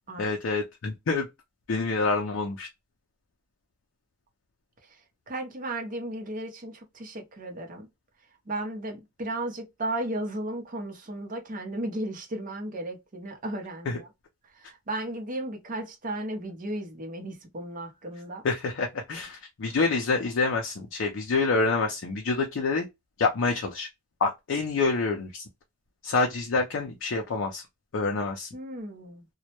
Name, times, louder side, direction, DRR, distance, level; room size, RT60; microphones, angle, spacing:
voice 1, 0.2-1.3 1.7-2.7 13.9-14.0 18.4-22.9 23.2-23.9 24.2-25.4 26.0-27.6 27.9-28.5, left 3 dB, 65° left, 0.5 m, -27 dB
voice 2, 5.3-7.9 8.5-14.0 14.6-18.4 28.5-29.3, right 1 dB, 40° right, 0.7 m, -35 dB
2.1 x 2.0 x 2.8 m
head